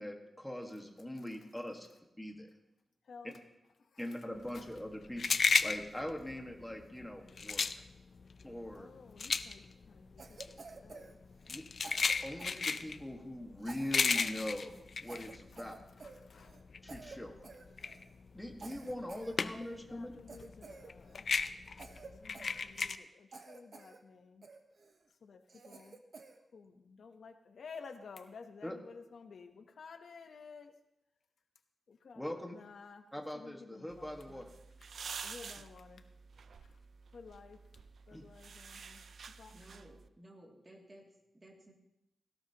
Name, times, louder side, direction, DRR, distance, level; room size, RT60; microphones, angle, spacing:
voice 1, 0.0-1.9 2.2-2.5 4.0-7.6 8.4-8.9 11.5-11.6 12.2-14.7 15.0-15.7 16.8-17.5 18.3-20.1 28.6-28.7 32.1-32.6 33.1-34.5 38.1-38.2, left 1 dB, 5° left, 1 dB, 1.6 m, -42 dB
voice 2, 3.1-3.4 3.8-4.2 4.5-4.7 8.7-11.2 16.0-16.6 19.7-21.2 22.1-24.5 25.2-26.0 26.5-26.7 27.0-30.7 31.9-33.1 33.3-34.5 34.9-35.0 35.2-36.1 36.6-36.8 37.1-37.6 38.1-39.0 39.4-39.5, left 5 dB, 65° left, 6 dB, 0.9 m, -53 dB
sound 1, 4.4-16.1 16.4-19.9 20.1-23.0, left 5 dB, 50° left, 0.5 m, -34 dB
Cough, 10.2-11.6 11.8-13.1 13.6-14.4 14.6-14.8 15.1-16.6 16.9-17.2 17.4-18.1 18.6-19.8 20.3-21.3 21.8-23.0 23.3-24.0 24.4-25.0 25.5-26.4, right 4 dB, 50° right, 1.1 m, -52 dB
sound 2, 33.9-40.1, right 5 dB, 65° right, 0.5 m, -49 dB
voice 3, 39.5-41.7, right 1 dB, 25° right, -1 dB, 2.5 m, -57 dB
17.5 x 16.5 x 2.9 m, 0.87 s
wide cardioid pair, 180°, 0 cm